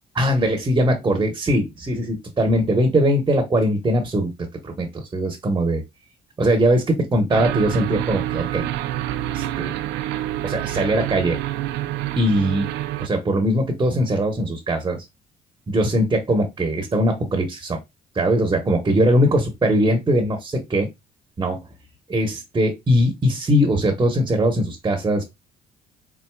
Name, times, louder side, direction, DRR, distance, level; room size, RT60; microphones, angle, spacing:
voice 1, 0.2-4.3 4.6-5.8 6.4-8.7 9.3-9.7 10.4-11.4 12.2-12.7 13.0-15.0 15.7-17.8 18.1-20.9 21.4-21.6 22.1-25.2, equal, 25° right, 4 dB, 1.0 m, -21 dB
sound 1, 7.3-13.1, right 14 dB, 90° right, 0.5 m, -27 dB
4.5 x 3.9 x 2.2 m, 0.19 s
cardioid pair, 110°, 17 cm